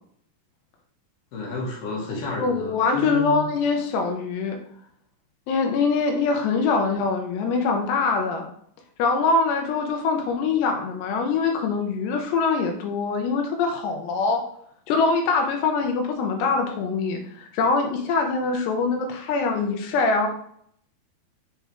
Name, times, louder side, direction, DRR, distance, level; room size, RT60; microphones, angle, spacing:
voice 1, 1.3-3.5, left 2 dB, 60° left, -2 dB, 3.0 m, -31 dB
voice 2, 2.4-4.6 5.5-8.5 9.0-14.4 14.9-20.3, left 4 dB, 75° left, 3 dB, 2.8 m, -23 dB
7.1 x 3.8 x 4.6 m, 0.65 s
omnidirectional pair, 5.3 m